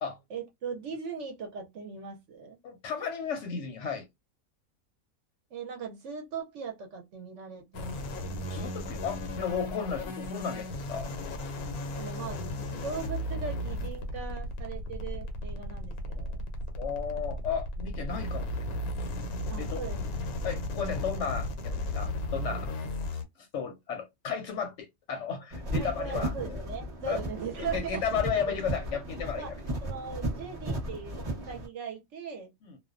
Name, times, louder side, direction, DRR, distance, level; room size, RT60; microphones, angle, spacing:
voice 1, 0.3-2.6 5.5-8.3 12.0-16.4 19.5-20.0 25.8-28.6 29.4-29.5 29.8-32.5, right 6 dB, 65° right, 0.8 m, -39 dB
voice 2, 2.6-4.1 8.5-11.1 16.8-18.7 19.6-19.8 20.4-22.9 23.4-26.3 27.1-27.2 27.6-29.5 32.7-32.8, left 6 dB, 65° left, 0.8 m, -34 dB
sound 1, 7.7-23.2, left 1 dB, 90° left, 1.1 m, -35 dB
sound 2, 25.5-31.7, right 1 dB, 35° right, 0.7 m, -35 dB
2.4 x 2.1 x 2.4 m
omnidirectional pair, 1.5 m